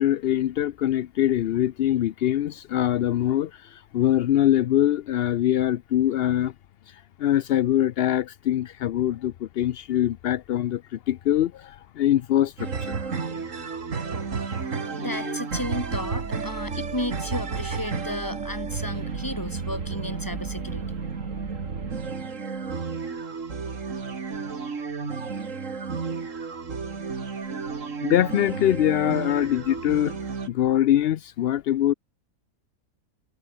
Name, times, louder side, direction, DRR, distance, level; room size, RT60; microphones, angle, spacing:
voice 1, 0.0-6.5 7.2-13.0 15.1-15.4 28.0-30.2 30.5-31.9, left 12 dB, 65° left, 0.6 m, -23 dB
sound 1, 12.6-30.5, right 5 dB, 60° right, 2.4 m, -32 dB
voice 2, 14.8-20.8, left 1 dB, 15° left, 3.2 m, -33 dB
omnidirectional pair, 1.5 m